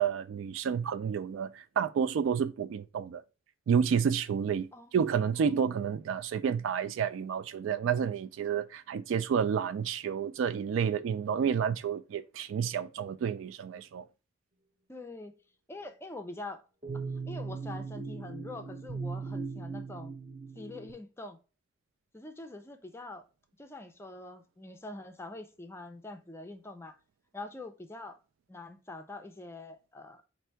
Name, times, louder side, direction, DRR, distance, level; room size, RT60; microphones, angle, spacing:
voice 1, 0.0-3.2 3.7-14.0, right 7 dB, 80° right, 0.3 m, -30 dB
voice 2, 14.9-15.3 15.7-16.6 17.3-20.1 20.6-21.4 22.1-23.3 23.6-27.0 27.3-28.2 28.5-30.2, left 2 dB, 15° left, 0.4 m, -44 dB
sound 1, 16.8-20.9, right 4 dB, 30° right, 0.7 m, -38 dB
4.4 x 2.6 x 4.4 m
head